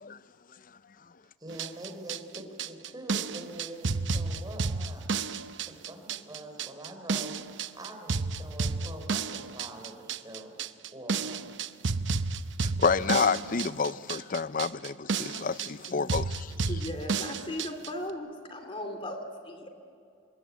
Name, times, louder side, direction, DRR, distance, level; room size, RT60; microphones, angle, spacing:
voice 1, 1.4-5.0 5.6-7.4 7.7-10.6 10.9-11.5, right 1 dB, 20° right, 4.3 m, -44 dB
sound 1, 1.5-17.9, right 4 dB, 65° right, 0.8 m, -32 dB
voice 2, 12.6-16.5, left 5 dB, 45° left, 0.6 m, -29 dB
voice 3, 16.7-19.7, left 1 dB, 25° left, 2.5 m, -37 dB
26.5 x 22.5 x 8.5 m
head